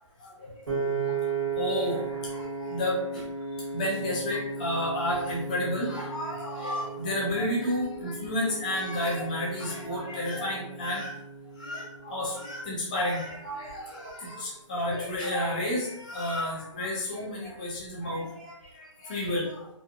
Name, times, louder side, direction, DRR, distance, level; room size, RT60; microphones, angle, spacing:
voice 1, 0.2-3.3 3.5-11.2 11.5-19.7, left 1 dB, 15° left, -4 dB, 0.4 m, -31 dB
Piano, 0.7-12.9, right 5 dB, 45° right, 0.9 m, -36 dB
2.8 x 2.2 x 2.4 m, 0.79 s
hypercardioid pair, 160°, 17 cm